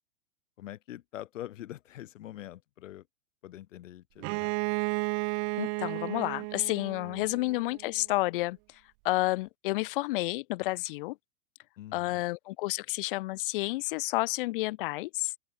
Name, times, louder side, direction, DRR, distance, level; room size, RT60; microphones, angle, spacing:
voice 1, 0.6-3.1 3.4-4.5 7.1-7.3 11.8-12.2, left 13 dB, 65° left, 6.2 m, -44 dB
Bowed string instrument, 4.2-7.9, right 40 dB or more, 40° right, 1.7 m, -33 dB
voice 2, 5.6-8.6 9.0-11.2 11.9-15.3, left 20 dB, 45° left, 0.5 m, -30 dB
open air
hypercardioid pair, 125°, 40 cm